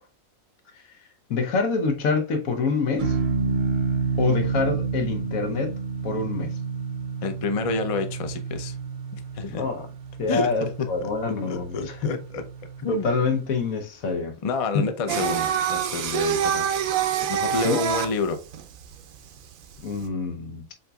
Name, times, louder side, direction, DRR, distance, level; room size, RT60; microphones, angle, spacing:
voice 1, 1.3-3.2 4.2-5.8 6.0-6.6 9.5-9.9 10.2-12.2 12.9-14.4 14.7-14.9 17.6-17.8 19.8-20.7, left 4 dB, 90° left, 1.3 m, -26 dB
sound 1, 3.0-13.5, right 5 dB, 50° right, 0.6 m, -30 dB
voice 2, 7.2-8.8 9.3-9.7 10.3-10.9 11.5-12.4 12.8-13.1 14.4-16.7 17.3-18.4, left 4 dB, 40° left, 0.5 m, -28 dB
Singing, 15.1-20.0, right 9 dB, 85° right, 1.1 m, -26 dB
7.8 x 2.8 x 2.3 m
omnidirectional pair, 1.4 m